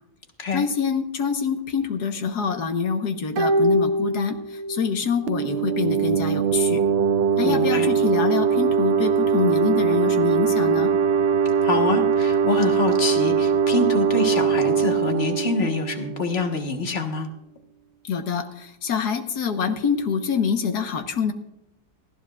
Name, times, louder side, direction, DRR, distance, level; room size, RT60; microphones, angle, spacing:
voice 1, 0.5-6.8 7.4-10.9 18.0-21.3, left 6 dB, 85° left, 6 dB, 1.8 m, -25 dB
sound 1, 3.4-5.0 5.3-5.4, equal, 60° right, 1.2 m, -23 dB
sound 2, 5.3-16.7, right 6 dB, 80° right, 0.5 m, -21 dB
voice 2, 7.4-7.9 11.6-17.3, left 3 dB, 40° left, 4 dB, 1.7 m, -26 dB
19.5 x 14.0 x 2.5 m, 0.83 s
omnidirectional pair, 1.7 m